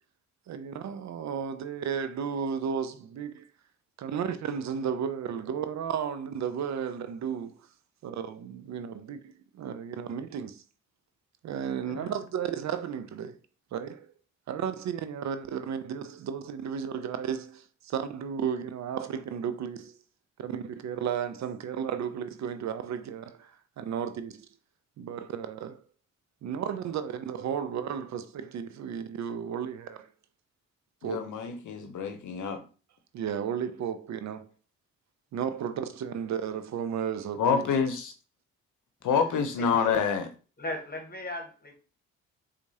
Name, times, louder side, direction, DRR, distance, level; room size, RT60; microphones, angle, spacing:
voice 1, 0.5-3.5 4.0-7.6 8.0-10.6 11.4-13.4 13.7-14.1 14.5-20.0 20.4-24.5 25.0-25.8 26.4-30.1 31.0-31.3 33.1-34.5 35.3-37.7, right 8 dB, 55° right, 0.5 m, -34 dB
voice 2, 31.0-32.6 37.4-38.1 39.0-40.3, left 6 dB, 60° left, 0.8 m, -27 dB
voice 3, 39.6-40.0 40.6-41.7, left 1 dB, 25° left, 1.2 m, -37 dB
4.5 x 2.4 x 2.7 m
hypercardioid pair, 50°, 34 cm